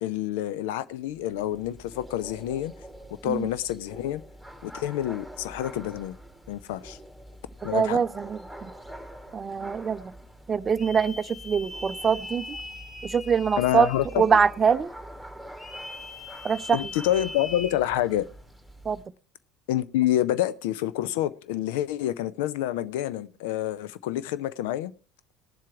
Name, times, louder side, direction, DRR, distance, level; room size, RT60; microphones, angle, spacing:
voice 1, 0.0-2.7 3.2-4.2 4.6-6.2 6.5-7.0 7.6-8.0 13.6-14.4 16.7-18.3 19.7-24.9, left 13 dB, 65° left, 0.5 m, -28 dB
sound 1, 0.9-19.0, right 1 dB, 5° left, 2.2 m, -46 dB
voice 2, 7.7-8.7 9.3-10.1 10.5-12.6 13.0-13.9 14.2-14.9 16.4-16.8 18.8-19.0, right 6 dB, 25° right, 0.5 m, -24 dB
sound 2, 10.8-14.6 15.6-17.8, left 2 dB, 30° left, 1.8 m, -41 dB
18.5 x 7.5 x 4.7 m
figure-of-eight pair, 65°, 0 cm